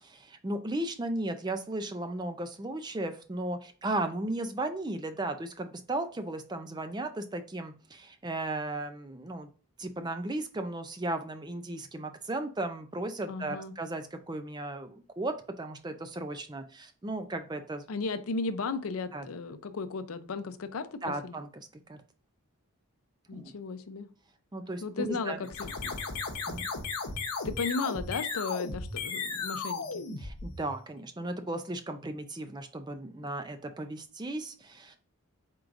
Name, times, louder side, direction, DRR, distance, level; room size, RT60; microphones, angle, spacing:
voice 1, 0.0-9.5 9.8-17.8 19.1-19.3 21.0-22.0 23.3-23.5 24.5-25.5 26.5-26.7 30.2-35.0, right 2 dB, 20° right, 8 dB, 0.4 m, -35 dB
voice 2, 13.3-13.7 17.9-21.4 23.3-24.1 24.8-25.9 27.4-30.0 33.2-33.3, left 4 dB, 70° left, 10 dB, 0.5 m, -35 dB
sound 1, 25.4-30.9, left 4 dB, 90° left, 0.9 m, -35 dB
4.6 x 3.8 x 2.5 m, 0.40 s
head